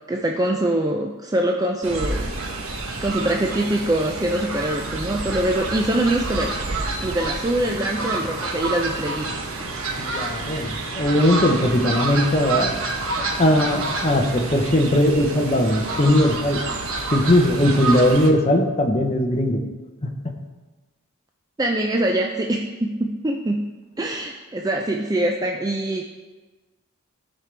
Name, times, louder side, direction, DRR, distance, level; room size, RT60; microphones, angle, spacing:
voice 1, 0.1-2.3 3.0-6.6 7.0-9.4 21.6-23.7 24.0-26.1, right 1 dB, 15° right, 2 dB, 0.4 m, -24 dB
Fowl, 1.8-18.3, right 3 dB, 70° right, 1.0 m, -28 dB
voice 2, 10.0-12.7 13.2-16.6 17.1-19.6 20.0-20.4, left 1 dB, 30° left, 3 dB, 0.8 m, -19 dB
13.5 x 5.3 x 3.4 m, 1.3 s
head